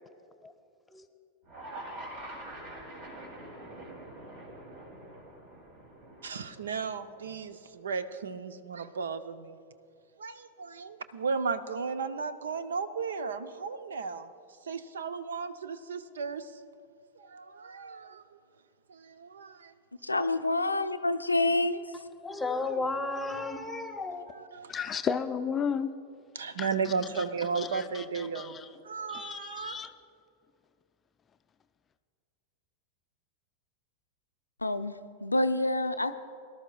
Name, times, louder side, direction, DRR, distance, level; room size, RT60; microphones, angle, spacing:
sound 1, 1.4-7.7, right 1 dB, 50° right, 2.7 m, -45 dB
voice 1, 6.2-9.6 10.2-14.3 14.6-16.5 17.2-18.2 18.9-19.7 24.5-24.7 26.4-28.5 28.8-29.8, right 5 dB, 65° right, 0.6 m, -35 dB
voice 2, 20.0-21.8 34.6-36.1, left 2 dB, 85° left, 0.5 m, -27 dB
voice 3, 22.2-24.3, left 3 dB, 5° left, 1.1 m, -33 dB
voice 4, 24.7-25.9 26.6-27.2 27.6-28.7 29.1-29.9, left 6 dB, 20° left, 0.4 m, -34 dB
23.0 x 12.5 x 2.3 m
figure-of-eight pair, 90°, 0 cm